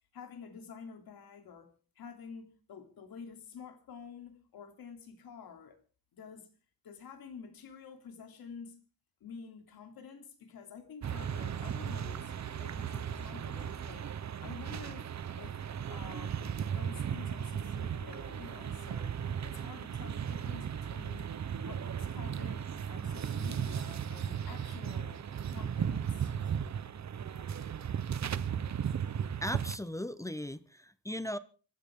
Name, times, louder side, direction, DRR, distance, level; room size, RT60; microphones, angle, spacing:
voice 1, 0.1-5.8 6.1-6.5 6.8-8.8 9.2-12.3 12.6-14.1 14.4-15.1 15.4-15.6 15.9-19.2 19.4-21.3 21.6-25.2 25.5-26.3, left 6 dB, 85° left, 3.3 m, -49 dB
sound 1, 11.0-29.8, right 8 dB, 50° right, 0.9 m, -36 dB
voice 2, 29.4-31.4, left 1 dB, 10° left, 0.7 m, -37 dB
25.5 x 13.0 x 3.7 m
wide cardioid pair, 130°, 35 cm